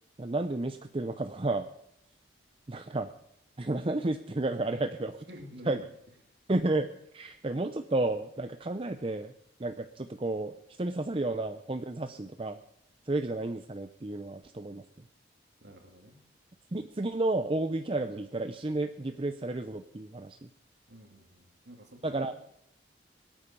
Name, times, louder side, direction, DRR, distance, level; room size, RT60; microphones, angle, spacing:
voice 1, 0.2-1.7 2.7-3.1 3.6-5.3 5.7-5.8 6.5-9.3 9.6-12.6 13.0-14.8 16.7-20.5 22.0-22.3, right 2 dB, 30° right, 8 dB, 0.6 m, -32 dB
voice 2, 5.3-5.8 15.6-16.2 20.9-22.3, equal, 65° right, 3 dB, 2.4 m, -49 dB
22.0 x 9.0 x 6.9 m, 0.76 s
head